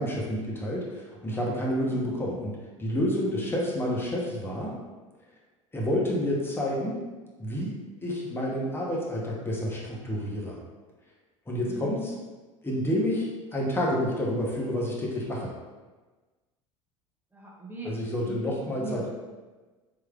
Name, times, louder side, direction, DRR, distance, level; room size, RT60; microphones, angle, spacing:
voice 1, 0.0-4.7 5.7-7.0 7.4-7.7 8.0-10.6 11.5-12.1 12.6-15.5 17.8-19.1, equal, 15° left, -4 dB, 1.0 m, -29 dB
voice 2, 1.2-1.5 11.5-11.8 17.3-17.9 18.2-19.1, right 1 dB, 10° right, -3 dB, 0.9 m, -40 dB
3.5 x 3.1 x 2.4 m, 1.3 s
hypercardioid pair, 70°, 16 cm